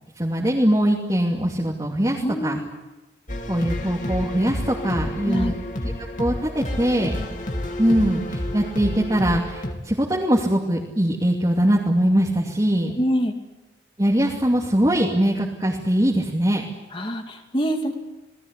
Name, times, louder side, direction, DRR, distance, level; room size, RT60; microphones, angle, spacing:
voice 1, 0.2-2.6 3.5-5.5 5.8-5.9 6.2-7.3 7.8-12.9 14.0-16.6, right 1 dB, 20° right, -2 dB, 2.6 m, -22 dB
voice 2, 2.2-2.7 5.3-5.5 13.0-13.3 16.9-17.9, equal, 30° left, 4 dB, 2.5 m, -25 dB
sound 1, 3.3-9.7, left 1 dB, 45° left, 2.9 m, -29 dB
29.0 x 20.0 x 8.3 m, 1.1 s
head